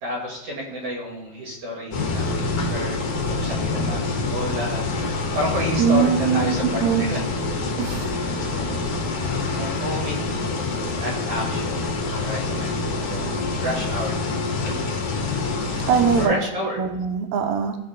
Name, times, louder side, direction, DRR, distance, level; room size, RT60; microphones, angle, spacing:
voice 1, 0.0-3.0 3.2-7.2 7.9-10.5 11.0-13.3 13.6-14.8 16.2-16.8, left 1 dB, 50° right, -3 dB, 3.2 m, -31 dB
sound 1, 1.9-16.3, left 3 dB, 60° left, 2.3 m, -26 dB
voice 2, 5.8-7.1 7.8-8.1 15.9-16.3 16.8-17.8, right 7 dB, 75° right, 5 dB, 2.2 m, -21 dB
18.5 x 6.3 x 2.3 m, 1.0 s
omnidirectional pair, 4.7 m